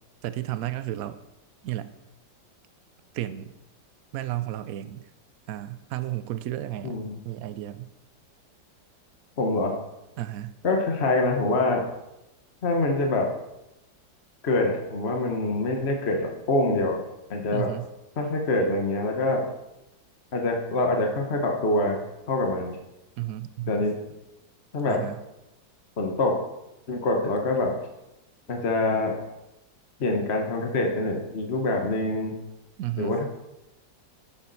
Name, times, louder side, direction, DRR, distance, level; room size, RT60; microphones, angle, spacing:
voice 1, 0.2-1.2 1.6-1.9 3.1-3.5 4.1-5.0 5.5-7.9 10.2-10.6 17.5-17.9 23.2-23.9 24.9-25.2 32.8-33.2, right 14 dB, 70° right, 13 dB, 0.8 m, -33 dB
voice 2, 6.8-7.2 9.4-9.7 10.6-11.8 12.6-13.3 14.4-17.0 17.3-17.7 18.2-19.4 20.3-22.0 22.3-22.8 23.7-23.9 24.7-25.0 26.0-26.4 26.9-27.8 28.5-29.2 30.0-32.3 33.0-33.3, left 2 dB, 40° left, 2 dB, 1.3 m, -25 dB
11.0 x 7.7 x 4.1 m, 0.92 s
omnidirectional pair, 2.0 m